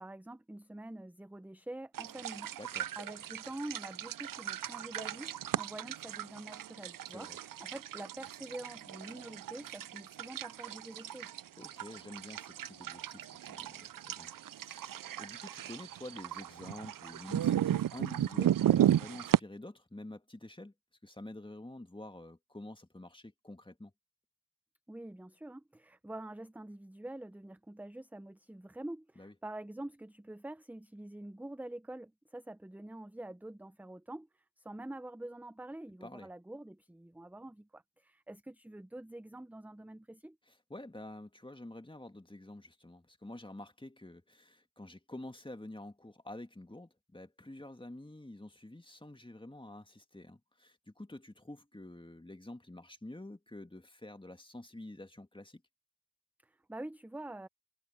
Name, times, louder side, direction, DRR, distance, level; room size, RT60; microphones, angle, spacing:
voice 1, 0.0-2.5 3.0-7.3 7.6-11.3 24.9-40.4 56.4-57.5, right 1 dB, 5° right, 0.6 m, -46 dB
sound 1, 1.9-19.4, right 11 dB, 50° right, 0.6 m, -35 dB
voice 2, 2.6-2.9 7.1-7.4 11.6-20.7 21.0-23.9 29.2-29.3 36.0-36.3 40.5-55.6, left 1 dB, 10° left, 2.3 m, -48 dB
supercardioid pair, 45°, 42 cm